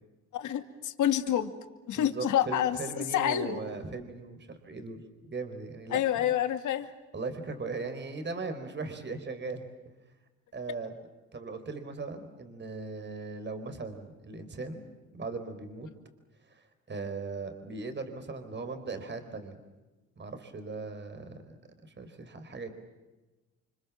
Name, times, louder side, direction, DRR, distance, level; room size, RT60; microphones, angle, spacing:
voice 1, 0.3-1.5 1.9-3.6 5.9-6.9, left 11 dB, 80° left, 8 dB, 2.4 m, -28 dB
voice 2, 2.0-6.3 7.1-9.6 10.5-10.9 11.3-14.8 15.1-15.9 16.5-19.6 20.2-21.6 21.8-22.7, right 3 dB, 35° right, 8 dB, 4.5 m, -38 dB
29.5 x 25.5 x 7.4 m, 1.2 s
cardioid pair, 90°, 30 cm